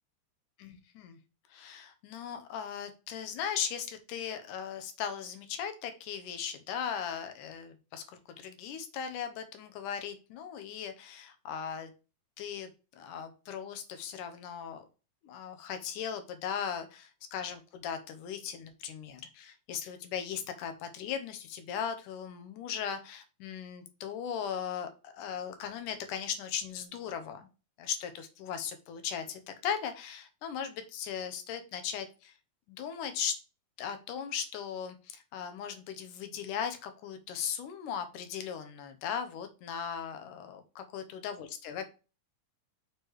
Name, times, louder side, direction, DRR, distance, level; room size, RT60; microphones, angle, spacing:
voice 1, 0.6-1.2 1.5-8.0 8.4-11.9 12.4-12.7 13.0-14.8 15.2-27.5 27.8-32.3 32.7-33.4 33.8-41.9, left 8 dB, 80° left, 7 dB, 2.4 m, -38 dB
6.5 x 3.2 x 4.6 m, 0.33 s
omnidirectional pair, 3.6 m